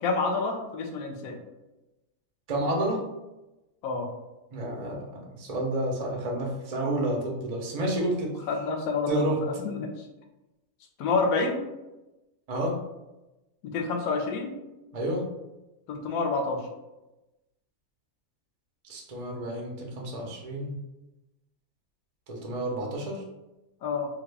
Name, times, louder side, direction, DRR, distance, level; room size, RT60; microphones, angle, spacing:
voice 1, 0.0-1.4 3.8-4.1 8.5-10.0 11.0-11.6 13.7-14.5 15.9-16.6 23.8-24.1, left 4 dB, 70° left, 2 dB, 1.0 m, -28 dB
voice 2, 2.5-3.0 4.5-5.0 5.4-8.3 9.1-9.4 12.5-12.8 14.9-15.2 18.9-20.8 22.3-23.2, right 1 dB, 45° right, -1 dB, 0.5 m, -30 dB
3.6 x 2.2 x 3.3 m, 1.0 s
omnidirectional pair, 1.6 m